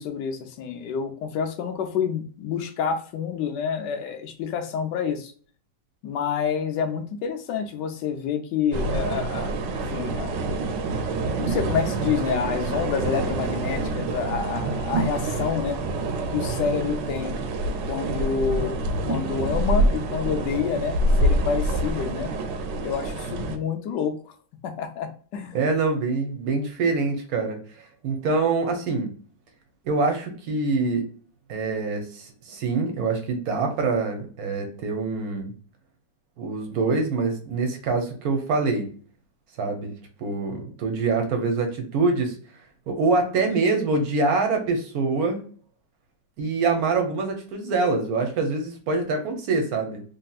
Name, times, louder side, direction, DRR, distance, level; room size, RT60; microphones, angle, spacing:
voice 1, 0.0-5.3 6.0-10.3 11.4-15.8 16.3-17.4 17.9-22.3 22.8-24.3 24.6-25.6, left 6 dB, 85° left, 6 dB, 1.3 m, -28 dB
sound 1, 8.7-23.6, right 2 dB, 90° right, 1.2 m, -26 dB
voice 2, 14.6-15.0 25.5-29.1 29.8-31.1 31.5-35.5 36.4-38.9 39.6-39.9 40.2-42.4 42.9-45.4 46.4-50.0, right 3 dB, 65° right, 4 dB, 1.1 m, -25 dB
3.4 x 2.7 x 2.3 m, 0.43 s
omnidirectional pair, 1.8 m